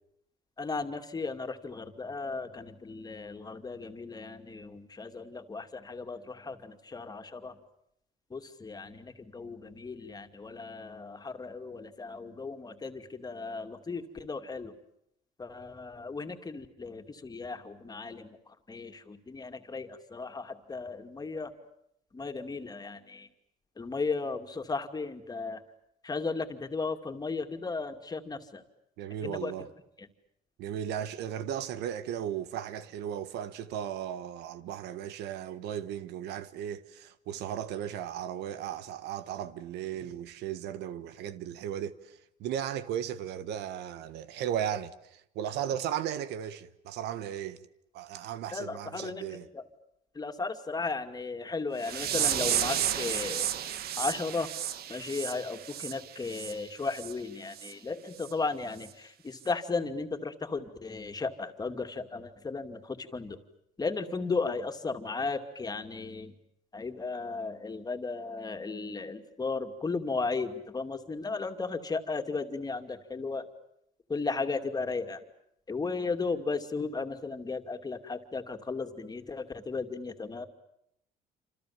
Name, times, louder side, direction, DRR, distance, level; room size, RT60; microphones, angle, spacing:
voice 1, 0.6-7.6 8.3-14.8 15.4-21.5 22.1-23.3 23.8-25.6 26.0-28.6 29.2-29.5 30.0-30.1 48.5-49.2 49.5-49.6 50.1-54.5 54.9-63.4 63.8-66.4 66.7-73.5 74.1-75.2 75.7-80.5, left 4 dB, 25° left, 2.6 m, -35 dB
voice 2, 29.0-29.7 30.6-47.6 47.9-49.5, right 10 dB, 85° right, 1.4 m, -36 dB
sound 1, 51.8-56.5 56.9-57.1 57.6-57.7 58.2-58.3 58.8-58.9, right 10 dB, 65° right, 1.6 m, -32 dB
28.0 x 27.0 x 7.4 m
cardioid pair, 110°, 17 cm